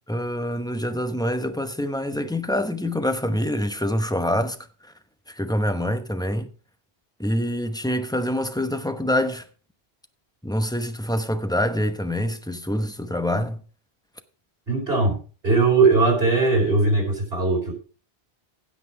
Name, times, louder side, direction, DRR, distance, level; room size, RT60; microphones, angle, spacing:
voice 1, 0.1-4.6 4.8-4.9 5.3-6.5 7.2-9.4 10.4-13.6, left 1 dB, 5° left, 0.9 m, -25 dB
voice 2, 14.7-17.7, right 3 dB, 70° right, 4.5 m, -20 dB
16.0 x 6.0 x 4.6 m
omnidirectional pair, 1.1 m